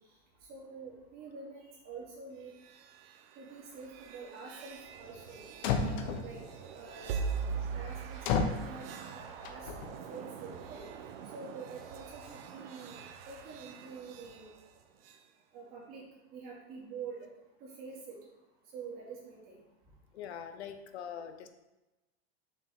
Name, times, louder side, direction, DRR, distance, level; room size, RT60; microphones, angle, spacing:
voice 1, 0.5-2.5 3.4-6.4 6.7-7.2 7.7-10.8 11.3-14.5 15.5-17.2 17.6-18.2 18.7-19.6, right 5 dB, 30° right, -5 dB, 2.5 m, -47 dB
sound 1, 2.4-15.3, right 6 dB, 60° right, 0.9 m, -43 dB
sound 2, 5.3-5.4 5.6-6.5 8.2-8.7 9.4-9.8, left 5 dB, 45° left, 0.8 m, -31 dB
voice 2, 20.1-21.5, left 8 dB, 80° left, 8 dB, 0.9 m, -43 dB
6.8 x 6.2 x 3.7 m, 1.0 s
supercardioid pair, 170°, 32 cm